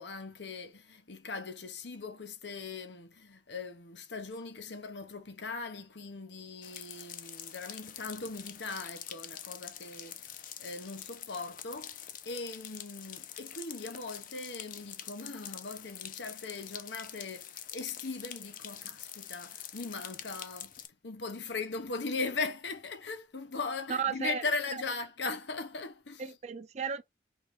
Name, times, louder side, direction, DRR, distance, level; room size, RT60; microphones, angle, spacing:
voice 1, 0.0-10.3 10.6-26.3, left 3 dB, 80° left, 1.0 m, -39 dB
sound 1, 6.6-20.9, left 10 dB, 50° left, 0.7 m, -45 dB
voice 2, 23.9-24.4 24.7-24.8 26.2-27.0, right 7 dB, 40° right, 0.4 m, -34 dB
4.4 x 3.2 x 3.5 m
head